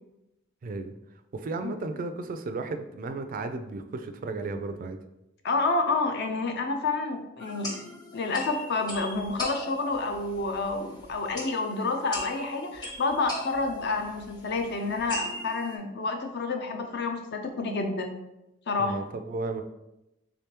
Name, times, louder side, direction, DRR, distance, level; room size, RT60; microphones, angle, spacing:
voice 1, 0.6-0.9 1.3-5.0 18.8-19.6, right 3 dB, 45° right, 8 dB, 0.3 m, -34 dB
voice 2, 5.4-7.7 8.1-18.1 18.7-19.0, left 3 dB, 60° left, 5 dB, 0.5 m, -29 dB
sound 1, 7.4-15.7, left 1 dB, 20° left, 0.7 m, -40 dB
3.5 x 3.3 x 2.9 m, 0.89 s
head